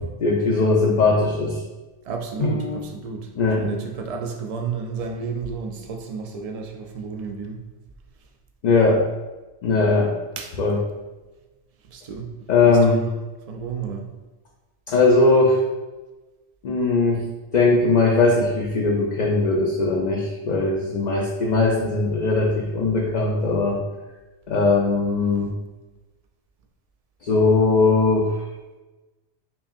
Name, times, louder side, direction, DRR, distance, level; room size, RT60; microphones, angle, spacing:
voice 1, 0.2-1.6 2.4-2.8 3.4-3.6 8.6-9.0 9.6-10.1 10.6-10.8 12.5-13.0 14.9-15.6 16.6-17.2 17.5-23.8 24.5-25.5 27.2-28.3, left 3 dB, 55° left, -1 dB, 0.5 m, -19 dB
voice 2, 2.0-3.3 3.6-7.6 10.4-10.6 11.8-12.3 12.6-13.1 13.5-14.1, right 5 dB, 60° right, 3 dB, 0.4 m, -31 dB
5.4 x 2.6 x 2.5 m, 1.1 s
omnidirectional pair, 1.1 m